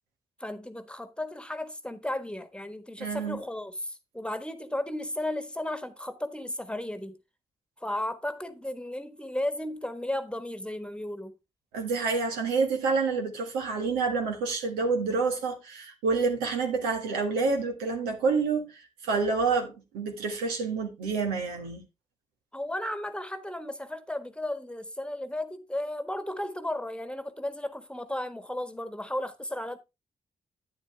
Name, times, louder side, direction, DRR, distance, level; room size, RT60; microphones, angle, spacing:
voice 1, 0.4-7.2 7.8-11.4 22.5-29.8, left 1 dB, 5° left, 1.4 m, -34 dB
voice 2, 3.0-3.4 11.7-21.9, right 4 dB, 90° right, 1.6 m, -28 dB
9.2 x 7.8 x 3.3 m
hypercardioid pair, 45°, 15 cm